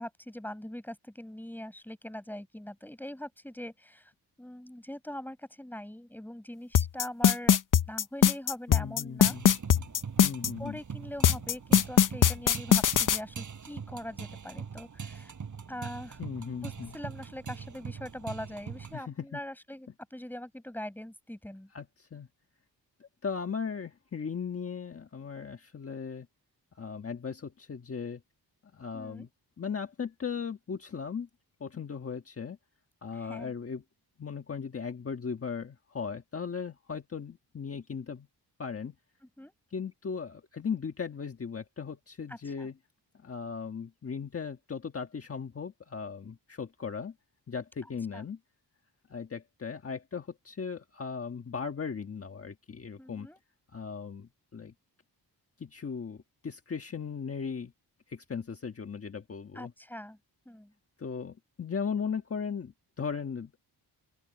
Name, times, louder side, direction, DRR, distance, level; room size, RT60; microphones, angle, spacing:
voice 1, 0.0-4.1 4.4-7.6 7.9-9.4 10.6-15.3 15.7-16.2 16.6-21.7 28.9-29.3 33.1-33.5 39.4-39.5 42.3-42.7 48.1-48.2 53.0-53.4 59.5-60.2 60.5-60.7, left 1 dB, 5° left, 7.2 m, -42 dB
sound 1, 6.7-10.5 11.2-13.2, left 9 dB, 50° left, 0.8 m, -21 dB
voice 2, 8.7-9.5 10.2-10.8 16.2-16.9 18.9-19.4 21.7-22.3 23.0-26.3 26.8-28.2 28.7-29.3 29.6-31.3 31.6-32.6 33.0-33.8 34.2-38.3 38.6-38.9 39.7-42.7 43.2-47.1 47.5-48.4 49.1-53.3 53.7-54.7 55.6-57.7 58.1-59.7 61.0-63.6, left 6 dB, 35° left, 1.4 m, -37 dB
sound 2, 9.2-19.0, right 6 dB, 45° right, 7.3 m, -42 dB
open air
wide cardioid pair, 170°, 40 cm